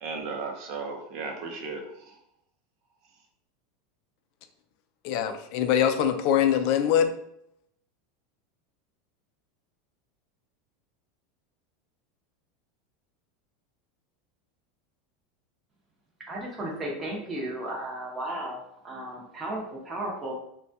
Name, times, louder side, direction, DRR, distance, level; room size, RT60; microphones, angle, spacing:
voice 1, 0.0-2.2, right 4 dB, 55° right, 3 dB, 0.7 m, -35 dB
voice 2, 5.0-7.1, left 9 dB, 60° left, 7 dB, 0.4 m, -23 dB
voice 3, 16.3-18.6 18.8-20.3, right 1 dB, 20° right, -3 dB, 0.8 m, -34 dB
3.3 x 2.2 x 2.7 m, 0.75 s
supercardioid pair, 135°, 0 cm